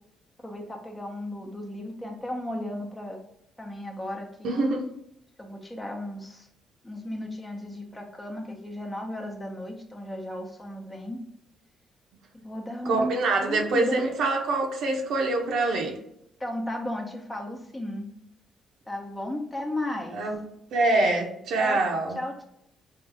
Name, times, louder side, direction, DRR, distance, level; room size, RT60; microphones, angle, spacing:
voice 1, 0.4-3.2 3.6-4.6 5.4-6.5 6.8-11.2 12.4-13.2 13.5-14.1 16.4-18.1 18.9-20.2 21.6-21.8 22.2-22.4, left 1 dB, 15° left, 1 dB, 0.8 m, -34 dB
voice 2, 4.4-4.8 12.8-16.0 20.1-20.4 20.7-22.2, right 2 dB, 75° right, 1 dB, 0.8 m, -25 dB
3.6 x 2.7 x 3.4 m, 0.77 s
cardioid pair, 90°, 0 cm